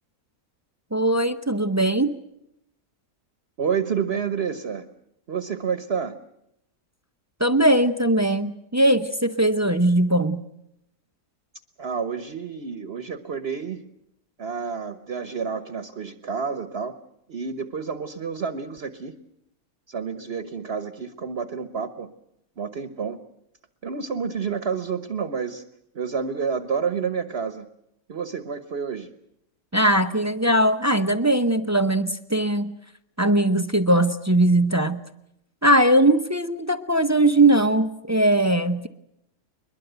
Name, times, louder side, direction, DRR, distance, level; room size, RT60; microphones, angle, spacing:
voice 1, 0.9-2.1 7.4-10.4 29.7-32.7 33.2-35.0 35.6-38.9, right 1 dB, 15° right, 9 dB, 0.6 m, -20 dB
voice 2, 3.6-4.8 5.3-6.1 11.8-13.8 14.4-16.9 17.3-19.1 19.9-22.1 22.6-23.2 23.8-25.6 25.9-27.7 28.1-29.1, right 6 dB, 45° right, 9 dB, 1.2 m, -29 dB
22.0 x 22.0 x 8.0 m, 0.82 s
omnidirectional pair, 1.6 m